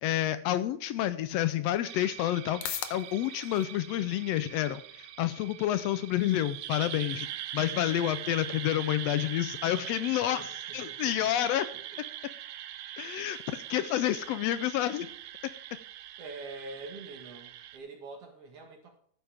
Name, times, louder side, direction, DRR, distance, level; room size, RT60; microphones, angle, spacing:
voice 1, 0.0-7.3 7.5-10.4 10.7-11.6 13.0-15.1, left 13 dB, 85° left, 12 dB, 1.4 m, -29 dB
sound 1, 1.1-18.1, left 11 dB, 70° left, 2.0 m, -50 dB
sound 2, 1.8-17.8, right 12 dB, 80° right, 1.4 m, -42 dB
voice 2, 10.3-11.3 11.7-12.0 13.4-13.6 16.2-19.0, right 3 dB, 55° right, 3 dB, 2.4 m, -46 dB
12.5 x 9.3 x 3.4 m, 0.64 s
omnidirectional pair, 3.5 m